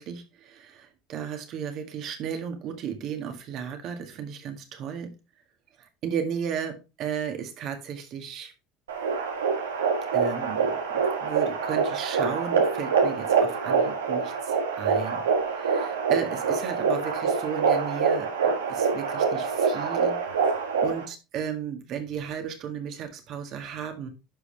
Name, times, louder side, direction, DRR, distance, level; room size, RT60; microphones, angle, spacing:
voice 1, 0.0-5.1 5.8-8.5 10.1-15.3 15.5-24.1, right 8 dB, 55° right, 6 dB, 1.9 m, -35 dB
sound 1, 8.9-21.0, right 5 dB, 85° right, 1.4 m, -25 dB
11.5 x 5.0 x 3.4 m, 0.29 s
hypercardioid pair, 75°, 0 cm